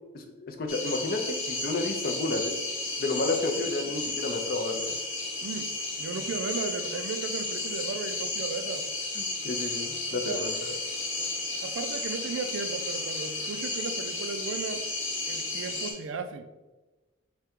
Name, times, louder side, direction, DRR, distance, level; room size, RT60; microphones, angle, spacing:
voice 1, 0.1-2.6 3.0-4.9 9.2-10.7, left 2 dB, 45° left, 4 dB, 0.4 m, -31 dB
sound 1, 0.7-15.9, left 2 dB, 75° left, 1.0 m, -33 dB
voice 2, 5.4-8.8 10.1-10.5 11.2-11.3 11.6-14.9 15.3-16.5, right 4 dB, 75° right, 9 dB, 0.3 m, -36 dB
3.6 x 2.2 x 4.3 m, 1.2 s
head